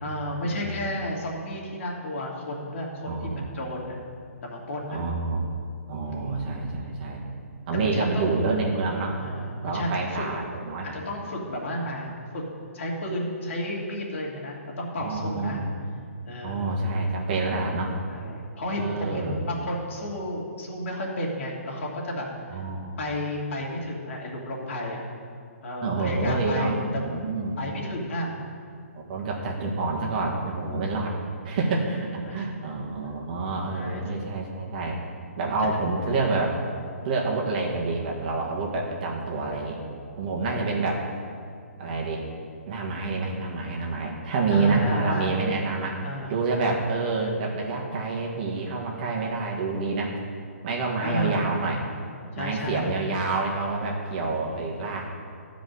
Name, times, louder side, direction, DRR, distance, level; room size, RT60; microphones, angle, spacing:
voice 1, 0.0-4.0 4.4-5.0 6.1-6.2 6.5-6.8 7.8-8.4 9.2-10.3 10.9-12.1 12.3-12.4 12.7-15.6 16.3-16.7 18.1-22.3 22.5-22.6 23.0-25.0 25.6-27.0 27.6-28.3 32.2-32.5 33.7-34.0 35.6-35.9 40.5-40.8 44.5-45.3 46.0-46.3 51.0-51.5 52.3-52.9 54.3-54.7, equal, 55° left, -3 dB, 2.7 m, -32 dB
voice 2, 3.1-3.4 4.9-5.4 5.9-7.2 7.7-9.2 9.6-11.0 15.0-15.7 16.4-18.0 18.8-19.4 22.5-23.0 25.8-27.6 28.9-31.1 31.4-35.0 35.4-36.6 37.0-39.8 40.2-41.0 41.8-42.2 42.7-46.0 46.3-50.1 50.6-51.8 52.4-55.2, right 3 dB, 35° right, -1 dB, 1.8 m, -28 dB
12.5 x 5.2 x 7.9 m, 2.2 s
hypercardioid pair, 160°, 8 cm